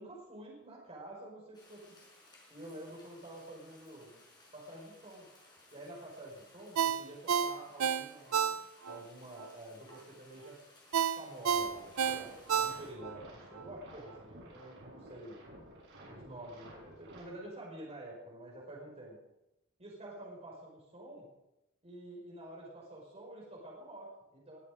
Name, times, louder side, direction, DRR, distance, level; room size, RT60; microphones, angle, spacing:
voice 1, 0.0-1.9 2.5-4.2 4.5-5.2 5.7-8.5 8.9-10.6 11.2-15.4 16.0-19.2 19.8-21.3 21.8-24.6, right 1 dB, 30° right, -3 dB, 5.6 m, -49 dB
sound 1, 1.5-12.9, left 2 dB, 20° left, 6.0 m, -60 dB
Ringtone, 6.8-9.0 9.4-9.5 10.9-13.2 13.6-13.7, right 7 dB, 85° right, 0.6 m, -31 dB
sound 2, 11.5-17.2, right 1 dB, 60° right, 7.6 m, -53 dB
22.5 x 12.0 x 5.3 m, 0.90 s
head